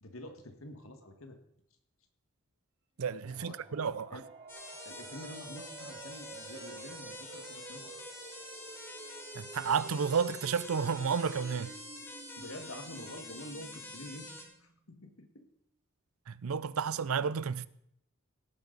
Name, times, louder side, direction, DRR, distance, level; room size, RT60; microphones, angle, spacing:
voice 1, 0.0-1.4 3.3-4.3 4.9-7.9 12.4-15.5, left 1 dB, 80° left, 1.8 m, -48 dB
Wind instrument woodwind instrument, 2.9-6.0 6.3-10.1, right 4 dB, 60° right, 3.2 m, -59 dB
voice 2, 3.0-4.2 9.3-11.7 16.3-17.7, right 6 dB, 90° right, 0.5 m, -31 dB
sound 1, 3.1-14.8, right 3 dB, 30° right, 0.4 m, -52 dB
sound 2, 4.5-14.4, left 1 dB, 10° left, 2.1 m, -47 dB
17.5 x 9.6 x 4.0 m
head